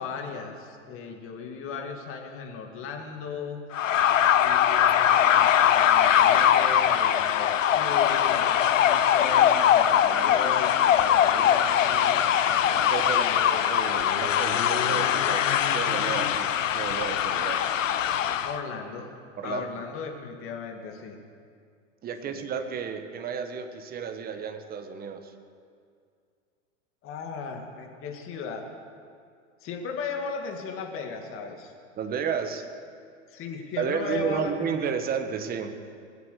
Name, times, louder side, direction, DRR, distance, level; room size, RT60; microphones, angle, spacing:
voice 1, 0.0-3.6 4.3-12.3 13.0-13.9 18.4-19.1 19.4-21.2 22.2-22.5 27.0-28.7 29.6-31.7 33.3-34.7, left 5 dB, 35° left, 3 dB, 2.1 m, -37 dB
sound 1, 3.7-18.6, left 9 dB, 90° left, 0.8 m, -22 dB
voice 2, 12.8-15.5 15.7-17.6 19.4-19.7 22.0-25.3 32.0-32.6 33.8-35.8, right 6 dB, 25° right, 8 dB, 1.2 m, -32 dB
20.5 x 8.2 x 6.8 m, 2.2 s
hypercardioid pair, 115°, 37 cm